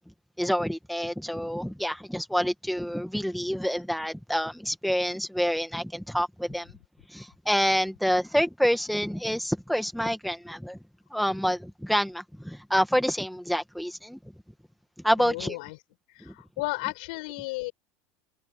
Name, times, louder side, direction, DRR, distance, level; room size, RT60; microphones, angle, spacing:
voice 1, 0.4-6.7 7.1-10.8 11.1-14.2 15.0-15.6 16.2-16.3, equal, ahead, 1.7 m, -27 dB
voice 2, 15.2-15.7 16.1-17.7, left 23 dB, 65° left, 6.1 m, -34 dB
supercardioid pair, 175°, 5 cm